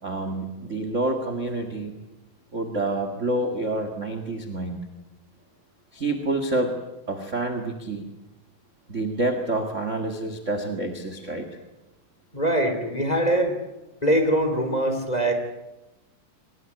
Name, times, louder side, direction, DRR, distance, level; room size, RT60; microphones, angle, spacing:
voice 1, 0.0-2.0 2.5-4.8 5.9-6.8 7.1-8.1 8.9-11.5, right 2 dB, 25° right, 7 dB, 1.8 m, -28 dB
voice 2, 12.3-13.5 14.0-15.3, right 1 dB, 10° left, 6 dB, 2.8 m, -22 dB
24.5 x 20.5 x 9.7 m, 1.0 s
omnidirectional pair, 4.0 m